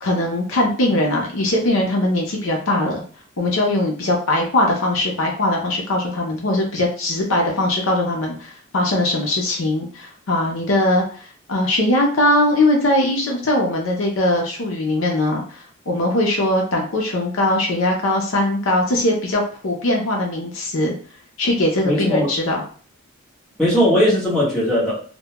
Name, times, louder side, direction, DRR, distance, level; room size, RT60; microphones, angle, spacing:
voice 1, 0.0-3.0 3.4-20.9 21.4-22.6, left 1 dB, 70° left, 0 dB, 0.6 m, -20 dB
voice 2, 21.8-22.3 23.6-24.9, equal, ahead, -8 dB, 1.0 m, -18 dB
2.2 x 2.2 x 2.8 m, 0.43 s
head